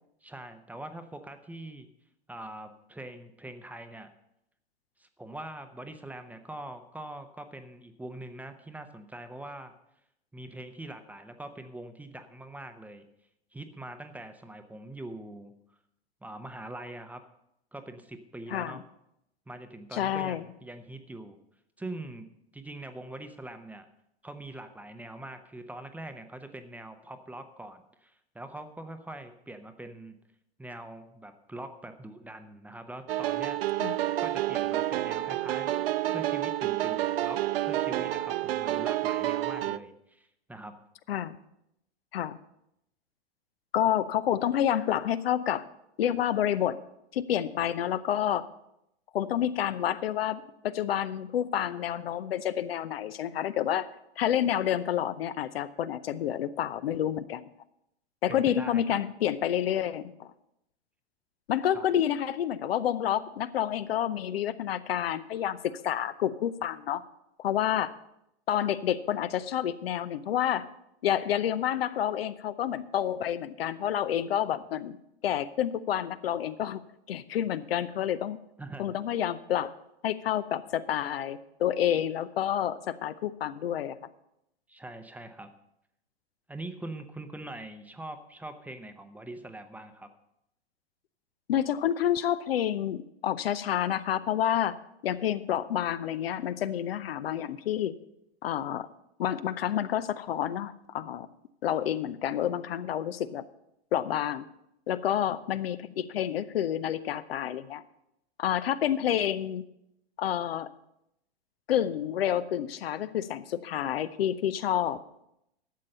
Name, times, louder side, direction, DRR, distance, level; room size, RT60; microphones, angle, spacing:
voice 1, 0.2-1.9 2.3-4.1 5.0-9.7 10.3-13.0 13.5-15.5 16.2-17.2 17.7-18.8 19.5-21.4 21.8-22.3 22.5-23.9 24.2-30.2 30.6-33.6 34.2-35.7 36.1-40.8 58.3-59.0 61.7-61.8 78.6-79.0 84.7-85.5 86.5-90.1, right 1 dB, 5° right, 8 dB, 0.7 m, -43 dB
voice 2, 19.9-20.4 33.8-34.0 41.1-41.4 42.1-42.4 43.7-45.6 46.0-46.8 47.1-48.5 49.1-53.9 54.2-57.4 58.2-60.3 61.5-67.0 67.4-67.9 68.5-70.6 71.0-75.0 75.2-76.8 77.1-78.4 78.8-79.7 80.0-84.0 91.5-94.8 95.0-97.9 98.4-98.9 99.2-101.3 101.6-103.4 103.9-104.4 104.9-107.8 108.4-109.6 110.2-110.7 111.7-115.0, left 10 dB, 65° left, 14 dB, 0.7 m, -29 dB
sound 1, 33.1-39.8, right 14 dB, 65° right, 0.5 m, -29 dB
12.0 x 7.5 x 5.5 m, 0.81 s
figure-of-eight pair, 100°, 32 cm